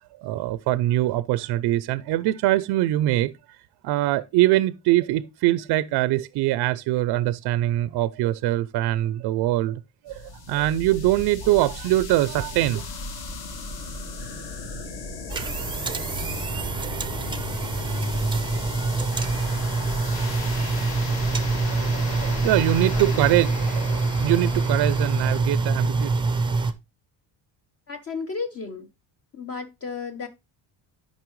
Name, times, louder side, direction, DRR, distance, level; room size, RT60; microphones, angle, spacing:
voice 1, 0.2-3.3 3.8-9.8 10.0-12.8 21.5-26.1, right 15 dB, 60° right, 0.5 m, -23 dB
sound 1, 10.1-25.4, left 3 dB, 50° left, 2.6 m, -36 dB
sound 2, 15.3-26.7, right 3 dB, 10° right, 0.5 m, -25 dB
voice 2, 22.9-23.4 27.9-28.9 29.3-30.3, left 5 dB, 30° left, 0.7 m, -34 dB
12.5 x 5.5 x 3.1 m
cardioid pair, 175°, 45 cm